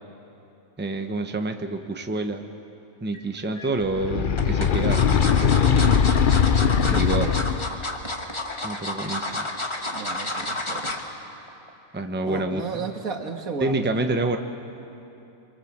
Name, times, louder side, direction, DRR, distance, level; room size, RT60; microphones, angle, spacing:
voice 1, 0.8-2.5 3.0-5.7 6.9-7.3 8.6-9.5 11.9-12.6 13.6-14.4, right 2 dB, 10° right, 6 dB, 0.8 m, -28 dB
sound 1, 3.1-3.7 4.4-11.1 11.5-11.7 12.0-12.1, left 2 dB, 20° left, 1.5 m, -31 dB
sound 2, 3.9-7.8, left 7 dB, 50° left, 0.7 m, -20 dB
voice 2, 9.9-10.9 12.2-14.2, right 5 dB, 90° right, 4 dB, 2.1 m, -34 dB
25.5 x 24.0 x 7.3 m, 2.9 s
omnidirectional pair, 1.4 m